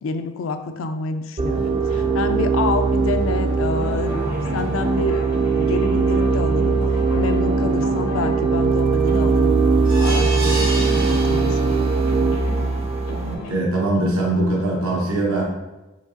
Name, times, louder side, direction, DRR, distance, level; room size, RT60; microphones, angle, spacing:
voice 1, 0.0-5.2 5.5-6.8 7.1-9.6 10.0-12.3, left 4 dB, 65° left, 8 dB, 0.3 m, -28 dB
sound 1, 1.4-13.3, right 4 dB, 30° right, 0.3 m, -20 dB
sound 2, 3.7-13.5, left 1 dB, 90° left, 1.0 m, -33 dB
sound 3, 9.8-12.1 12.6-12.7 13.0-13.1, right 1 dB, 45° right, 0.8 m, -30 dB
voice 2, 13.5-15.4, right 2 dB, 85° right, -4 dB, 1.0 m, -21 dB
4.6 x 2.8 x 2.7 m, 1.1 s
head